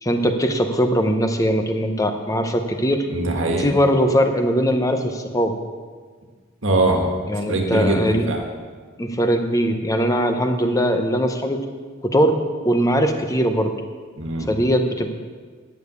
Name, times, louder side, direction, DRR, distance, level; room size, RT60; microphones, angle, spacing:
voice 1, 0.0-3.1 3.6-5.6 7.3-8.3 9.0-11.6 12.0-12.4 12.6-13.7 14.5-15.1, equal, 15° left, 6 dB, 0.8 m, -20 dB
voice 2, 3.1-3.7 6.6-7.1 7.5-8.4 14.2-14.5, right 2 dB, 70° right, 2 dB, 1.6 m, -21 dB
11.0 x 7.0 x 8.2 m, 1.5 s
head